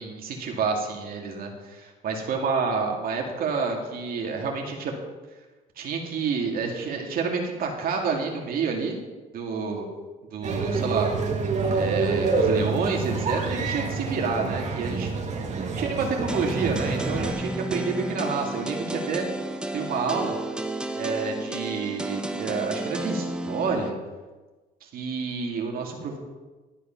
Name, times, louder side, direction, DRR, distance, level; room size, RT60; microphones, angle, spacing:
voice 1, 0.0-4.9 5.8-9.0 9.3-9.9 10.3-11.1 11.7-15.1 15.6-19.2 19.7-20.4 20.9-24.0 24.8-26.2, right 5 dB, 60° right, 1 dB, 2.2 m, -29 dB
sound 1, 10.4-17.3, right 4 dB, 45° right, 2.0 m, -27 dB
sound 2, 16.3-23.9, right 1 dB, 5° right, 0.9 m, -32 dB
12.0 x 8.4 x 5.8 m, 1.2 s
cardioid pair, 110°, 17 cm